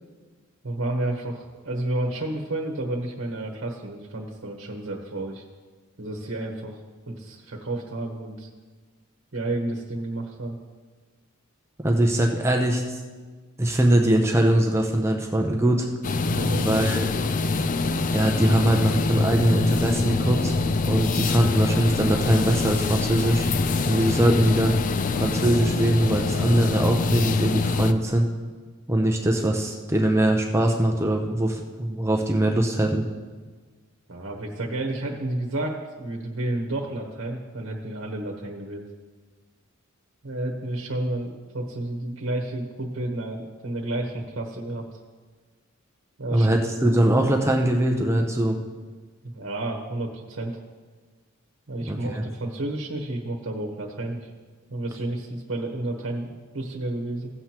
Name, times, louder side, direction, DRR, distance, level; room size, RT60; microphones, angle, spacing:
voice 1, 0.6-5.4 6.0-6.8 7.1-8.5 9.3-10.6 16.2-16.7 34.1-38.8 40.2-45.0 46.2-46.5 46.9-47.0 49.2-50.6 51.7-54.3 54.7-57.3, right 1 dB, 60° right, 0 dB, 1.2 m, -31 dB
voice 2, 11.8-13.0 13.6-15.9 16.6-17.1 18.1-20.5 20.9-23.5 23.9-24.8 25.1-28.3 28.9-33.0 46.3-48.6 51.9-52.2, right 1 dB, 15° right, 2 dB, 0.6 m, -22 dB
sound 1, 16.0-27.9, left 3 dB, 40° left, 0.4 m, -24 dB
16.5 x 7.7 x 2.9 m, 1.4 s
head